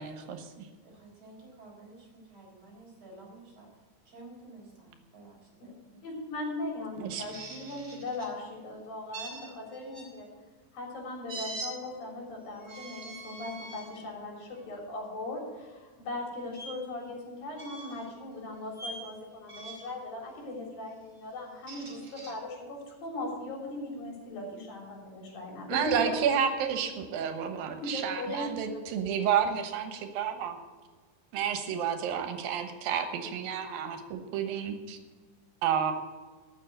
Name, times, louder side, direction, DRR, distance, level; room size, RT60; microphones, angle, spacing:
voice 1, 0.9-6.0, right 2 dB, 45° right, -2 dB, 5.2 m, -52 dB
voice 2, 6.0-10.3 10.7-26.2 27.8-28.5, left 2 dB, 85° left, -1 dB, 5.2 m, -39 dB
sound 1, 7.1-8.3 9.1-10.1 11.3-11.7 12.6-13.9 14.5-14.7 16.5-16.7 17.5-18.1 18.7-19.1 19.5-20.0 21.4-22.3, right 2 dB, 20° right, 2.1 m, -43 dB
voice 3, 25.7-30.6 31.3-35.0 35.6-35.9, right 8 dB, 90° right, 7 dB, 3.0 m, -30 dB
13.5 x 6.5 x 8.0 m, 1.4 s
omnidirectional pair, 4.0 m